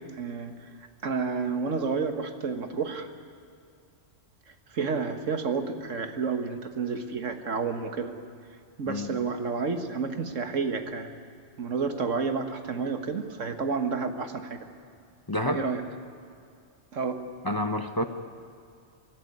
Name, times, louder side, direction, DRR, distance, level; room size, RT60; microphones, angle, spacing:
voice 1, 0.2-0.7 1.0-3.1 4.7-8.1 8.8-11.1 11.6-14.7 15.5-15.8 16.9-17.2, right 5 dB, 85° right, 6 dB, 1.7 m, -30 dB
voice 2, 8.9-9.2 15.3-15.6 17.4-18.1, left 1 dB, 20° left, 6 dB, 0.7 m, -28 dB
23.5 x 13.5 x 9.7 m, 2.3 s
omnidirectional pair, 1.3 m